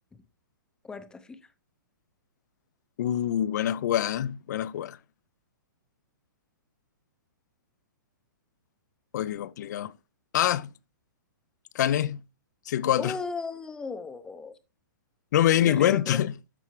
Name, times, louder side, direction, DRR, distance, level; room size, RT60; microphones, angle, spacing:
voice 1, 0.8-1.4 13.0-14.5 15.6-16.2, left 4 dB, 5° left, 0.6 m, -36 dB
voice 2, 3.0-5.0 9.1-9.9 10.3-10.7 11.7-12.2 12.7-13.1 15.3-16.3, left 11 dB, 55° left, 0.5 m, -25 dB
13.0 x 4.5 x 3.1 m
hypercardioid pair, 150°, 11 cm